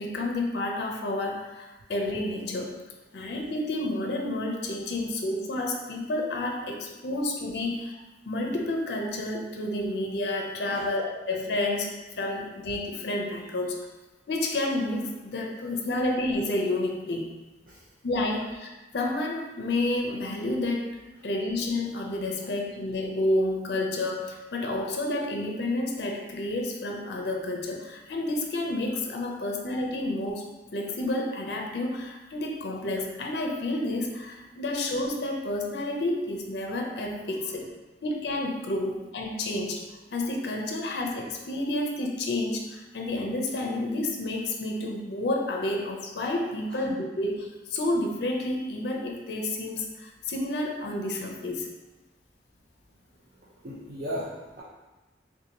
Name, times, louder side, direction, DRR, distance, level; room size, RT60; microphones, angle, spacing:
voice 1, 0.0-2.8 3.1-7.9 8.2-13.9 14.3-17.2 18.0-18.7 18.9-20.9 21.2-37.7 38.0-39.9 40.1-51.7, left 1 dB, 65° left, 1 dB, 0.5 m, -30 dB
voice 2, 53.1-54.6, equal, 50° right, -7 dB, 0.5 m, -38 dB
3.6 x 2.7 x 2.8 m, 1.1 s
head